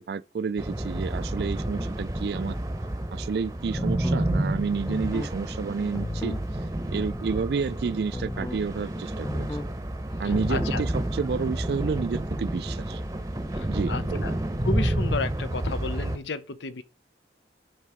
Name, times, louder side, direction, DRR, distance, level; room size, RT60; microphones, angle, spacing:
voice 1, 0.0-2.6 3.1-6.4 6.9-9.5 10.2-13.0 13.7-14.3, right 5 dB, 60° right, 0.3 m, -30 dB
sound 1, 0.6-16.2, right 1 dB, 20° right, 0.7 m, -30 dB
sound 2, 3.8-4.3 4.9-5.3 5.9-6.5 8.1-8.7 9.2-9.7 10.3-10.8, left 2 dB, 15° left, 0.3 m, -34 dB
voice 2, 10.5-10.8 13.5-14.3 14.6-16.8, left 3 dB, 85° left, 0.7 m, -32 dB
11.0 x 5.5 x 3.5 m
head